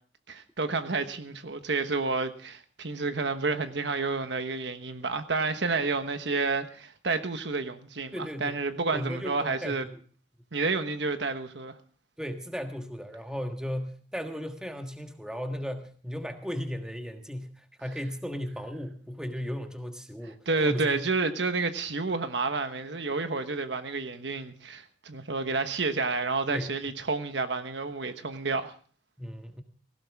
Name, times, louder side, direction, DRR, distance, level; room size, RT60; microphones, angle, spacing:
voice 1, 0.3-9.9 10.5-11.8 20.5-28.7, right 3 dB, 70° right, 1.2 m, -30 dB
voice 2, 8.1-8.6 8.9-10.0 12.2-21.0 26.5-26.7 29.2-29.6, equal, 5° right, 1.5 m, -36 dB
18.0 x 16.0 x 3.5 m
head